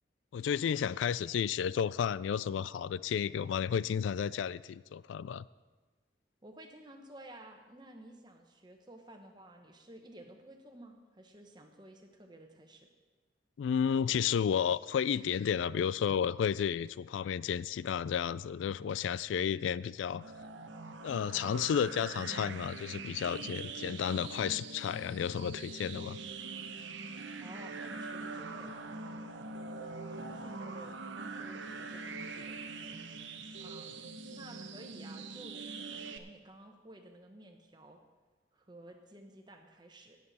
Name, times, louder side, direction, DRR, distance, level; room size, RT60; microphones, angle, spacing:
voice 1, 0.3-5.4 13.6-20.3 21.0-26.2, left 7 dB, 90° left, 19 dB, 0.3 m, -32 dB
voice 2, 6.4-12.9 27.4-28.8 30.0-33.2 33.6-35.6 35.9-38.0 38.5-40.2, right 1 dB, 25° right, 4 dB, 1.1 m, -53 dB
sound 1, 20.2-36.2, right 3 dB, 80° right, 0.8 m, -43 dB
18.0 x 7.7 x 4.2 m, 1.3 s
head